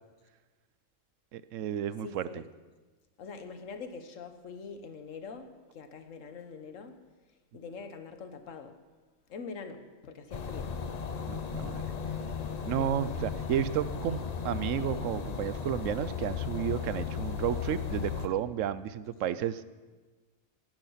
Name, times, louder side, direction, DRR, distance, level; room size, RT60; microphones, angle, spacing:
voice 1, 1.3-2.4 11.3-11.8 12.6-19.7, right 10 dB, 75° right, 15 dB, 1.0 m, -32 dB
voice 2, 2.0-2.5 3.2-7.0 7.5-8.8 9.3-10.8 12.8-12.9, left 5 dB, 75° left, 8 dB, 1.5 m, -44 dB
sound 1, 10.3-18.3, left 6 dB, 40° left, 0.7 m, -35 dB
16.0 x 10.5 x 5.7 m, 1.3 s
omnidirectional pair, 1.4 m